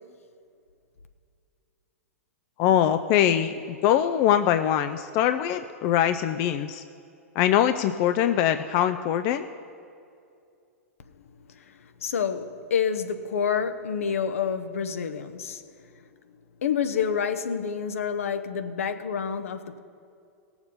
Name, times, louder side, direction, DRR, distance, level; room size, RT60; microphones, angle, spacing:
voice 1, 2.6-3.5 3.8-6.8 7.4-9.5, left 10 dB, 40° left, 0.4 m, -22 dB
voice 2, 11.5-15.6 16.6-19.8, left 7 dB, 70° left, 0.8 m, -28 dB
18.0 x 7.2 x 5.4 m
figure-of-eight pair, 105°, 8 cm